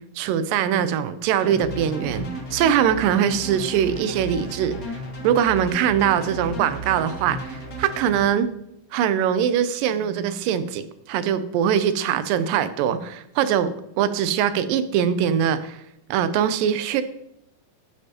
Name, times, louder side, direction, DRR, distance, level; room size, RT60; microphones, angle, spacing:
voice 1, 0.2-5.0 5.2-8.5 8.9-15.8 16.1-17.0, right 9 dB, 90° right, 13 dB, 2.3 m, -22 dB
sound 1, 1.4-8.3, right 2 dB, 70° left, 0.8 m, -34 dB
12.5 x 6.6 x 2.9 m, 0.80 s
omnidirectional pair, 3.9 m